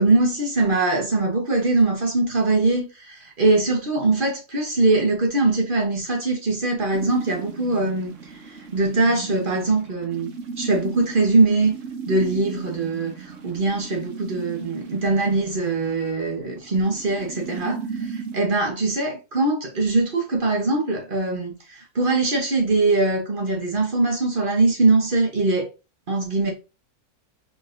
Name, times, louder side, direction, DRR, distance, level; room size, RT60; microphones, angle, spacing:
voice 1, 0.0-10.3 10.6-11.7 12.1-25.7 26.1-26.5, right 3 dB, 35° right, 1.1 m, -22 dB
sound 1, 6.9-18.4, right 5 dB, 60° right, 1.1 m, -36 dB
3.8 x 3.8 x 2.5 m
omnidirectional pair, 1.6 m